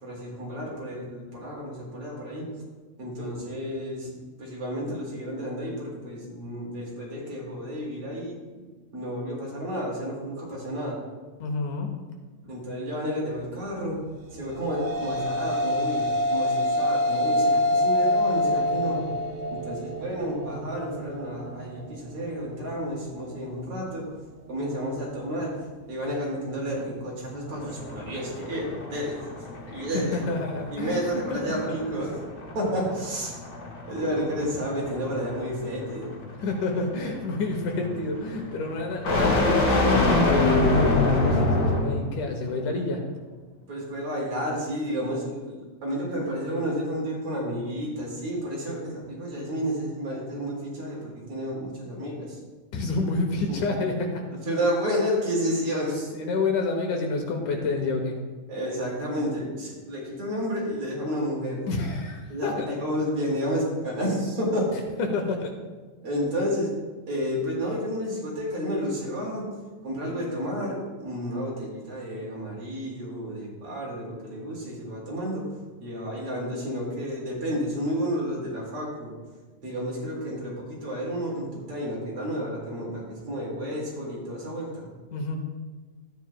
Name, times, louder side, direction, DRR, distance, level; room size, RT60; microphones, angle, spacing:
voice 1, 0.0-2.5 3.0-4.1 4.4-8.4 8.9-11.0 12.4-14.0 14.3-19.0 19.5-24.1 24.5-25.5 25.9-29.3 29.7-30.2 30.7-32.1 32.5-33.3 33.9-36.1 43.7-52.4 53.5-53.6 54.4-56.1 58.5-61.6 62.3-64.7 66.0-66.7 67.1-69.5 69.8-75.4 75.8-79.1 79.6-84.9, equal, 45° right, -4 dB, 2.8 m, -31 dB
voice 2, 11.4-11.9 29.7-31.6 36.4-43.1 52.7-54.2 56.1-58.2 61.7-62.7 65.0-65.5 85.1-85.4, left 3 dB, 75° left, 3 dB, 2.3 m, -29 dB
sound 1, 14.4-22.9, left 1 dB, 80° right, 3.1 m, -26 dB
sound 2, 27.5-42.0, left 2 dB, 50° left, 1.1 m, -26 dB
12.0 x 9.3 x 2.2 m, 1.4 s
omnidirectional pair, 3.9 m